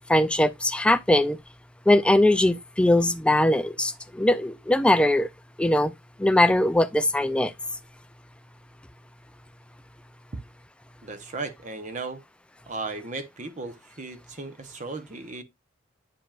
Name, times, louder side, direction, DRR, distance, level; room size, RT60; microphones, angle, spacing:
voice 1, 0.1-1.4 1.9-5.3 5.6-5.9 6.2-7.5, left 1 dB, 5° left, 0.3 m, -21 dB
voice 2, 11.0-12.2 12.7-15.4, right 3 dB, 40° right, 0.8 m, -36 dB
8.7 x 5.2 x 2.4 m
head